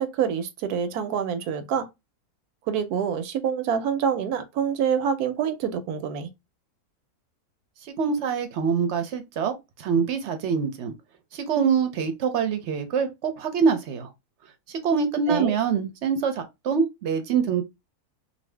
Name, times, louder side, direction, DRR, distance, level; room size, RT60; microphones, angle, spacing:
voice 1, 0.0-1.9 2.7-6.3 15.3-15.6, right 7 dB, 90° right, 1.1 m, -26 dB
voice 2, 7.8-9.5 9.8-10.9 11.3-14.1 14.7-17.6, right 6 dB, 65° right, 0.7 m, -25 dB
2.7 x 2.6 x 3.2 m
omnidirectional pair, 1.6 m